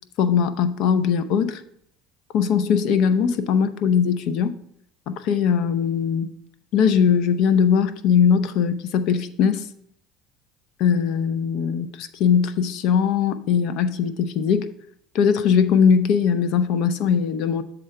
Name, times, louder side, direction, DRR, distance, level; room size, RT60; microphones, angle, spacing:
voice 1, 0.2-1.6 2.3-4.5 5.1-6.3 6.7-9.6 10.8-14.7 15.1-17.6, left 7 dB, 65° left, 0.6 m, -20 dB
7.5 x 3.8 x 5.6 m
supercardioid pair, 95°, 0 cm